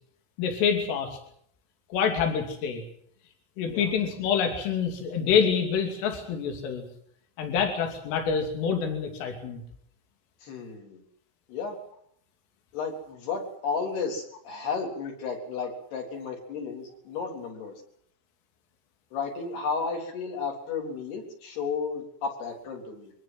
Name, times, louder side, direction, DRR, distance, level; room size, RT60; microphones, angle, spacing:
voice 1, 0.4-1.2 1.9-2.8 3.6-6.9 7.4-9.6, left 7 dB, 75° left, 4 dB, 5.3 m, -26 dB
voice 2, 10.4-11.0 11.5-11.8 12.7-17.7 19.1-23.1, left 5 dB, 55° left, 1 dB, 5.4 m, -33 dB
24.0 x 18.5 x 7.8 m, 0.68 s
omnidirectional pair, 5.8 m